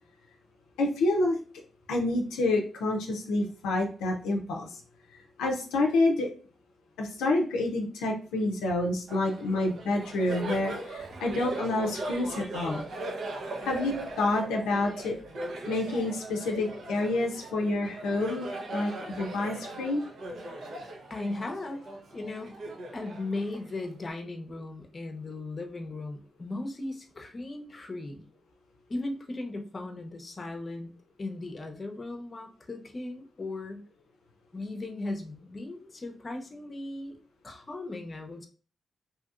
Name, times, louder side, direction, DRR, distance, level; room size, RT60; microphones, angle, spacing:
voice 1, 0.8-1.4 1.9-4.8 5.1-6.3 7.0-12.8 13.6-15.2 15.7-20.0, left 2 dB, 90° left, 0 dB, 0.5 m, -28 dB
Laughter, 9.1-24.1, right 1 dB, 65° right, 0.7 m, -39 dB
voice 2, 21.1-21.8 22.1-22.5 22.9-28.3 28.9-30.9 31.2-33.8 34.5-37.1 37.4-38.5, left 2 dB, 40° left, 4 dB, 0.6 m, -37 dB
2.7 x 2.7 x 2.4 m, 0.39 s
supercardioid pair, 50°, 0 cm